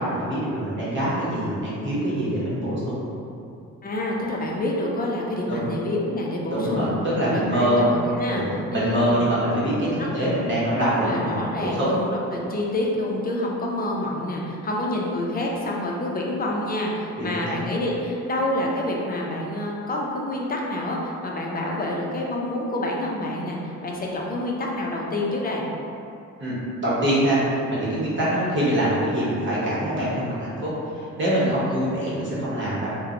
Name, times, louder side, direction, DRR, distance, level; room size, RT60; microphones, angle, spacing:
voice 1, 0.0-3.0 5.5-5.7 6.5-7.8 8.3-11.9 17.2-17.6 26.4-32.9, right 1 dB, 40° right, -8 dB, 1.0 m, -24 dB
voice 2, 3.8-6.9 7.3-8.4 8.7-9.2 10.2-10.3 11.0-25.6 31.4-31.8, left 1 dB, 30° left, -2 dB, 0.6 m, -27 dB
3.7 x 2.2 x 2.9 m, 2.7 s
cardioid pair, 90°, 30 cm